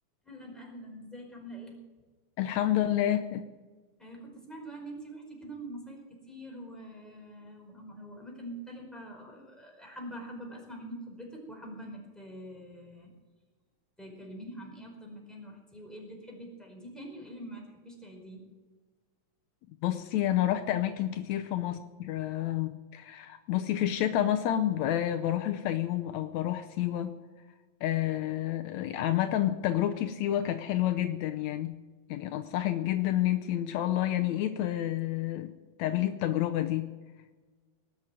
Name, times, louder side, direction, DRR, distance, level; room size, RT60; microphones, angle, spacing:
voice 1, 0.2-1.8 4.0-13.1 14.0-18.4, right 1 dB, ahead, -1 dB, 4.6 m, -45 dB
voice 2, 2.4-3.4 19.8-27.1 27.8-31.7 32.1-35.5 35.8-36.9, left 12 dB, 80° left, 8 dB, 2.0 m, -29 dB
19.0 x 7.6 x 9.1 m, 1.3 s
omnidirectional pair, 3.3 m